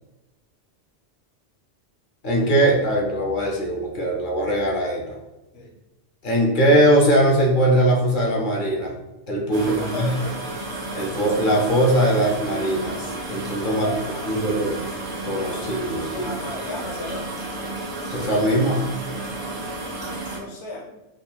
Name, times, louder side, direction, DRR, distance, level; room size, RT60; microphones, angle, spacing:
voice 1, 2.2-5.2 6.2-9.0 9.3-10.1 10.9-14.0 14.2-14.8 15.2-16.3 18.1-18.9, right 1 dB, 50° left, -1 dB, 0.7 m, -21 dB
voice 2, 9.5-10.4 13.7-14.6 16.1-17.3 20.1-20.9, left 2 dB, 85° left, 0 dB, 1.2 m, -35 dB
sound 1, 9.5-20.4, right 2 dB, 40° right, 0.7 m, -32 dB
4.1 x 3.6 x 2.2 m, 1.0 s
omnidirectional pair, 1.2 m